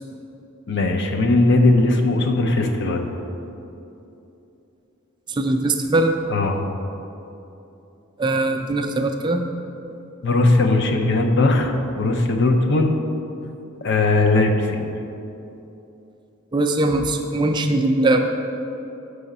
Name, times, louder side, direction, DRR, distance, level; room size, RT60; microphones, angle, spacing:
voice 1, 0.7-3.1 6.3-6.7 10.2-12.9 13.8-14.9, left 2 dB, 60° left, 4 dB, 0.6 m, -19 dB
voice 2, 5.3-6.1 8.2-9.4 16.5-18.2, right 2 dB, 20° right, 4 dB, 0.4 m, -20 dB
6.8 x 4.9 x 5.4 m, 2.9 s
head